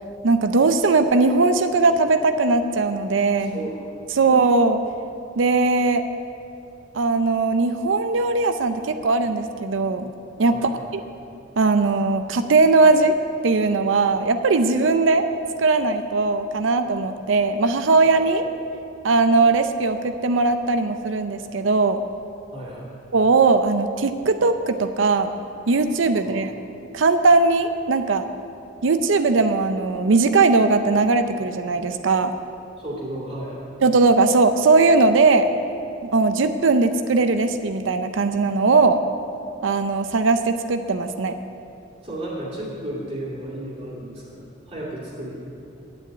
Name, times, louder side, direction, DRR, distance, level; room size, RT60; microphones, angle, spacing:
voice 1, 0.2-3.6 4.2-4.8 5.4-6.0 6.9-10.1 10.4-10.7 11.6-13.1 13.4-15.2 15.6-18.4 19.0-22.0 23.1-25.3 25.7-26.5 26.9-28.3 28.8-32.3 33.8-35.5 36.0-39.0 39.6-41.3, right 3 dB, 85° right, 9 dB, 0.6 m, -19 dB
voice 2, 3.3-3.8 4.1-4.3 10.5-10.8 22.5-22.9 26.3-26.4 32.8-33.7 42.0-44.4 44.7-45.3, right 1 dB, 30° right, -6 dB, 2.3 m, -33 dB
9.4 x 8.0 x 8.6 m, 2.6 s
head